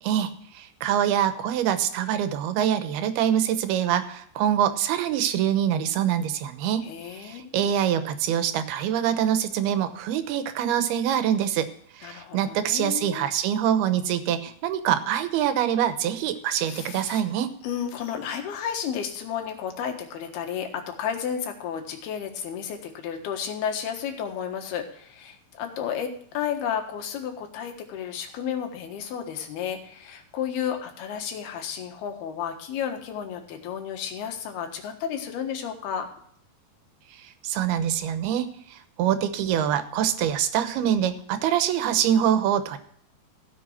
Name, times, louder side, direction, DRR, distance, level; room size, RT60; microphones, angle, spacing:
voice 1, 0.0-11.7 11.9-17.5 37.2-42.8, right 10 dB, 85° right, 10 dB, 3.0 m, -25 dB
voice 2, 6.8-7.6 12.0-13.3 16.6-17.2 17.6-36.1, left 8 dB, 85° left, 5 dB, 3.5 m, -32 dB
16.5 x 6.9 x 4.3 m, 0.65 s
omnidirectional pair, 4.4 m